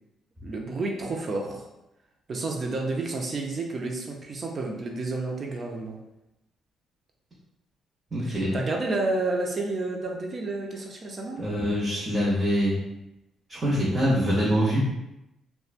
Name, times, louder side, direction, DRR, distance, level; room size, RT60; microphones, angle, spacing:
voice 1, 0.4-1.6 2.3-6.0 8.2-11.5, right 2 dB, 45° right, 1 dB, 0.5 m, -30 dB
voice 2, 8.1-8.6 11.4-12.8 13.5-14.8, equal, 25° right, -8 dB, 0.9 m, -24 dB
3.0 x 2.2 x 2.4 m, 0.90 s
cardioid pair, 90°, 0 cm